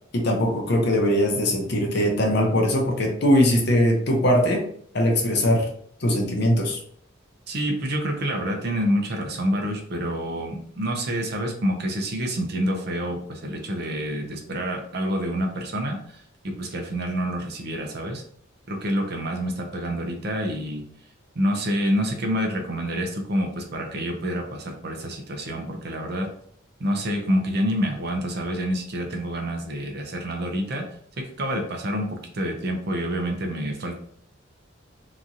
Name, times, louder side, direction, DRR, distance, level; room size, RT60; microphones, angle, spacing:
voice 1, 0.1-4.7 4.9-5.7 6.0-6.8, equal, 55° left, 1 dB, 0.7 m, -21 dB
voice 2, 7.5-18.2 18.7-20.8 21.4-26.3 26.8-30.9 31.2-33.9, equal, 50° right, 2 dB, 0.6 m, -27 dB
2.9 x 2.4 x 2.6 m, 0.62 s
head